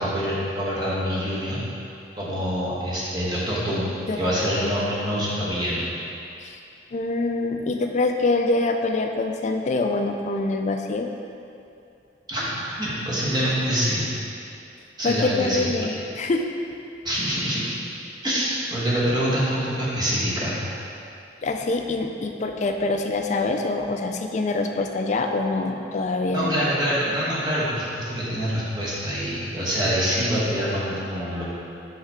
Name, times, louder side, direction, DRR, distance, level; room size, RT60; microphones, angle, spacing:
voice 1, 0.0-1.6 2.2-3.9 4.2-5.8 12.3-14.1 15.0-15.7 17.0-17.8 18.2-20.6 26.3-31.4, equal, 25° right, -8 dB, 1.3 m, -25 dB
voice 2, 6.9-11.1 15.0-16.4 21.4-26.5, left 3 dB, 40° left, 4 dB, 0.3 m, -25 dB
5.6 x 5.5 x 3.6 m, 2.7 s
head